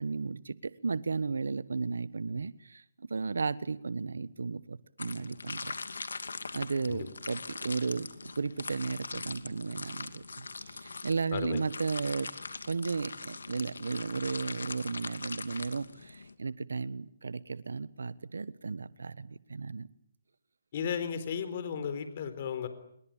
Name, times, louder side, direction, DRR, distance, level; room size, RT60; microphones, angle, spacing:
voice 1, 0.0-5.7 6.5-12.3 12.6-19.9, right 4 dB, 85° right, 18 dB, 1.2 m, -34 dB
sound 1, 5.0-16.3, left 4 dB, 90° left, 2.5 m, -42 dB
voice 2, 20.7-22.7, left 7 dB, 45° left, 11 dB, 4.0 m, -34 dB
27.0 x 22.5 x 8.9 m, 0.69 s
hypercardioid pair, 155°, 0 cm